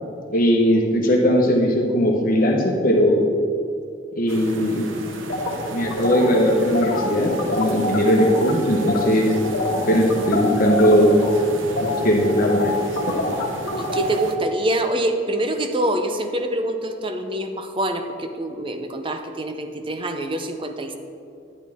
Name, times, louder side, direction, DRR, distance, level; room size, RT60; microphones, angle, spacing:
voice 1, 0.3-3.2 4.1-4.9 5.7-9.3 9.9-11.1 11.8-12.8 13.1-13.2, equal, 45° left, -1 dB, 1.1 m, -19 dB
sound 1, 4.3-14.4, right 2 dB, 75° right, 0.9 m, -35 dB
sound 2, 5.3-8.5 8.8-9.1 9.3-14.2, left 2 dB, 90° left, 1.7 m, -26 dB
voice 2, 13.8-21.0, right 1 dB, 25° right, 6 dB, 0.6 m, -25 dB
11.0 x 10.0 x 3.5 m, 2.5 s
head